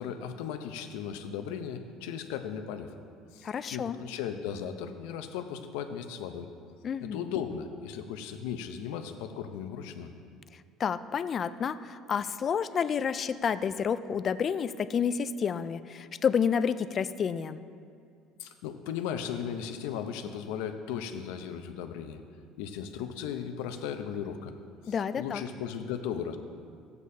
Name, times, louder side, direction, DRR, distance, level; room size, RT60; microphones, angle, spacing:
voice 1, 0.0-2.9 3.3-6.5 7.0-10.1 18.4-22.2 22.6-24.5 24.9-26.4, left 8 dB, 85° left, 7 dB, 0.7 m, -36 dB
voice 2, 3.4-4.0 6.8-7.3 10.8-17.6 24.9-25.4, left 7 dB, 40° left, 13 dB, 0.3 m, -30 dB
13.0 x 8.2 x 2.8 m, 2.3 s
supercardioid pair, 105°, 0 cm